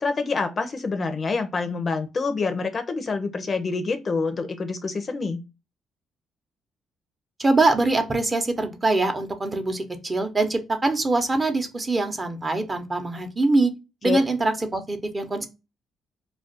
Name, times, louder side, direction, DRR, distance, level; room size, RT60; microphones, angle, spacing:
voice 1, 0.0-5.4 14.0-14.2, left 4 dB, 40° left, 0.5 m, -26 dB
voice 2, 7.4-13.7 14.0-15.5, right 2 dB, 25° right, 0.7 m, -23 dB
2.4 x 2.2 x 3.8 m
cardioid pair, 90°, 0 cm